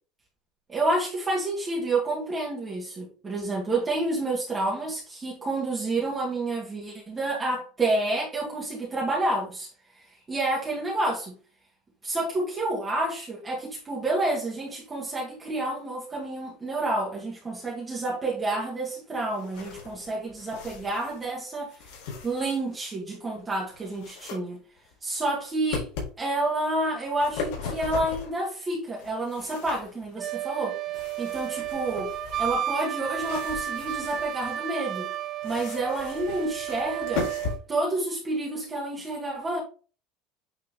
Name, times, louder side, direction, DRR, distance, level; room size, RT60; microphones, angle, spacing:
voice 1, 0.7-9.7 10.0-11.4 12.0-21.8 22.2-24.6 25.0-25.9 26.2-30.8 31.2-32.1 32.4-35.1 35.4-37.3 37.7-39.6, right 2 dB, 15° right, 2.0 m, -29 dB
Handling and opening a box from Amazon, 19.1-21.3 21.7-22.9 23.4-24.4 24.8-25.3 25.7-26.1 26.9-28.4 28.9-30.1 30.9-34.6 35.4-37.6, left 5 dB, 80° left, 3.7 m, -38 dB
Wind instrument woodwind instrument, 30.2-37.6, right 11 dB, 35° right, 0.7 m, -32 dB
8.6 x 3.8 x 3.7 m
cardioid pair, 150°, 0 cm